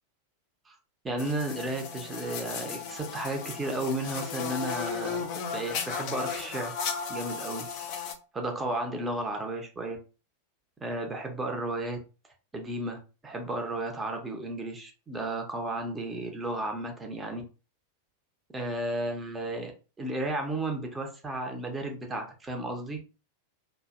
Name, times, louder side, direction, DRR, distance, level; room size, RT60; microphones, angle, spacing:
voice 1, 1.0-5.3 5.5-6.8 7.1-7.7 8.3-10.0 10.8-12.0 12.5-17.4 18.5-19.7 20.0-23.1, right 1 dB, 15° right, 4 dB, 0.6 m, -33 dB
sound 1, 1.2-8.1, left 6 dB, 45° left, 0.5 m, -35 dB
2.5 x 2.1 x 2.4 m, 0.33 s
figure-of-eight pair, 90°, 0 cm